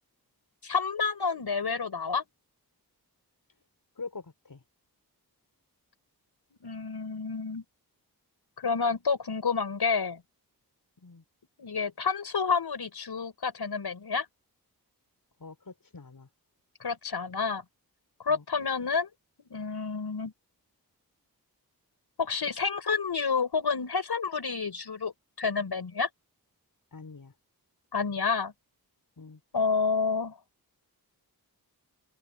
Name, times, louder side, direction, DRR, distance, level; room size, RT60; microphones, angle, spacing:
voice 1, 0.6-2.2 6.6-7.6 8.6-10.2 11.6-14.3 16.8-17.6 18.2-19.1 19.4-20.3 22.2-25.1 25.4-26.1 27.9-28.5 29.5-30.4, left 5 dB, 90° left, 6.0 m, -29 dB
voice 2, 4.0-4.6 11.0-11.2 15.4-16.3 18.3-18.4 26.9-27.3 29.2-29.4, left 4 dB, 60° left, 5.9 m, -44 dB
open air
wide cardioid pair, 70°, 38 cm